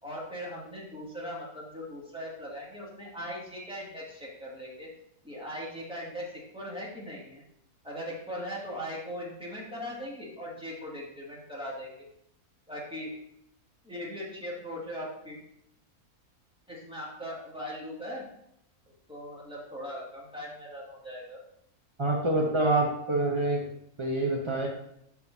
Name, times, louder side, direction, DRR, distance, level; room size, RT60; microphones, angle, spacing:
voice 1, 0.0-4.9 5.2-7.4 7.8-12.1 12.7-13.1 13.8-15.4 16.7-18.2 19.1-21.4, equal, 5° right, -6 dB, 2.3 m, -39 dB
voice 2, 22.0-23.6 24.0-24.7, right 2 dB, 30° right, -1 dB, 0.6 m, -26 dB
12.0 x 4.6 x 2.7 m, 0.74 s
omnidirectional pair, 1.6 m